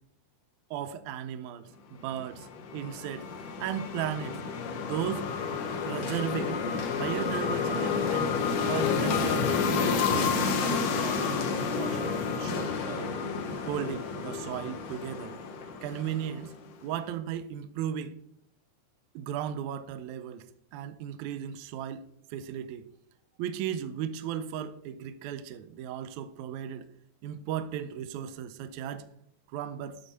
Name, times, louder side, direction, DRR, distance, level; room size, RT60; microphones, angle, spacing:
voice 1, 0.7-2.5 2.7-3.3 3.6-4.4 4.8-5.3 5.9-6.6 6.9-9.6 10.1-11.4 11.7-13.1 13.6-15.4 15.8-16.6 16.8-18.2 19.2-20.4 20.7-22.9 23.4-26.9 27.2-29.1 29.5-30.0, right 10 dB, 80° right, 1.7 m, -36 dB
sound 1, 2.2-16.5, left 5 dB, 70° left, 1.7 m, -30 dB
8.1 x 4.2 x 5.6 m
omnidirectional pair, 3.9 m